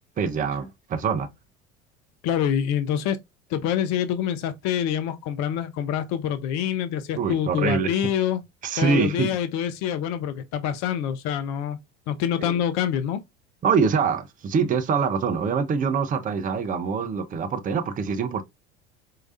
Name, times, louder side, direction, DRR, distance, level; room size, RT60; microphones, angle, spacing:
voice 1, 0.2-1.3 7.2-8.0 8.6-9.3 12.4-12.6 13.6-18.4, right 5 dB, 25° right, 0.6 m, -24 dB
voice 2, 2.2-3.2 3.5-8.4 8.8-11.8 12.1-13.2, left 9 dB, 55° left, 0.6 m, -26 dB
4.5 x 2.8 x 2.5 m
hypercardioid pair, 70°, 34 cm